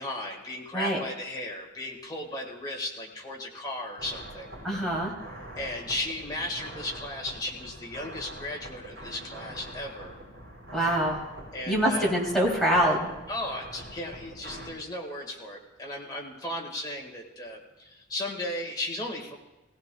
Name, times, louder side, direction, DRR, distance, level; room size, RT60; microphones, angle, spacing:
voice 1, 0.0-4.5 5.6-10.2 11.5-12.1 13.3-19.4, left 1 dB, 20° left, 0 dB, 1.7 m, -36 dB
sound 1, 4.0-14.7, right 1 dB, 60° right, 5.0 m, -44 dB
voice 2, 4.6-5.1 10.7-11.2 11.7-13.1, equal, ahead, -5 dB, 2.9 m, -24 dB
17.5 x 17.0 x 2.3 m, 1.0 s
head